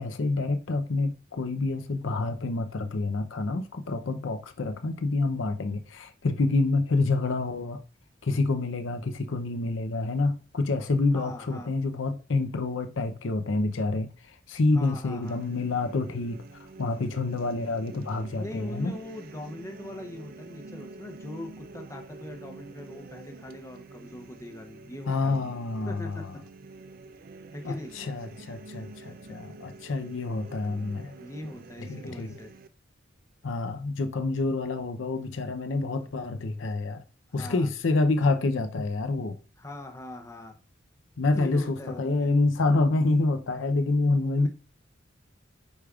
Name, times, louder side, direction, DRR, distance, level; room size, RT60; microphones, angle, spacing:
voice 1, 0.0-7.8 8.2-16.4 16.8-18.9 25.1-26.3 27.6-31.2 31.9-32.3 33.4-37.0 37.3-39.4 41.2-44.5, left 3 dB, 75° left, 0.6 m, -27 dB
voice 2, 11.1-11.7 14.7-15.4 18.4-25.6 25.9-26.3 27.5-27.9 31.2-32.5 37.4-37.7 39.6-40.6 41.4-42.3 44.4-44.5, left 1 dB, 15° left, 0.7 m, -41 dB
sound 1, 15.2-32.7, right 3 dB, 45° right, 0.4 m, -47 dB
8.2 x 5.0 x 2.3 m
head